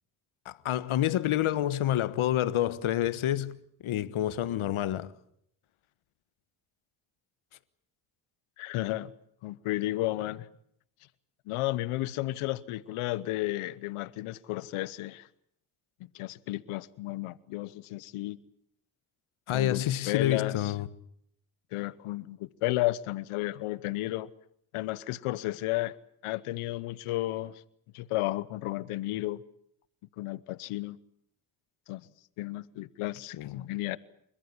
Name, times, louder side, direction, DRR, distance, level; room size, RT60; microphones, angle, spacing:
voice 1, 0.4-3.6 3.8-5.1 19.5-20.9 33.4-33.7, left 12 dB, 75° left, 1.4 m, -28 dB
voice 2, 8.6-9.1 9.4-10.5 11.5-15.3 16.0-18.4 19.5-20.7 21.7-24.3 24.7-25.9 26.2-27.6 27.9-29.4 30.2-31.0 31.9-32.0 32.4-34.0, left 17 dB, 90° left, 1.0 m, -33 dB
29.0 x 14.5 x 9.7 m
supercardioid pair, 55°, 49 cm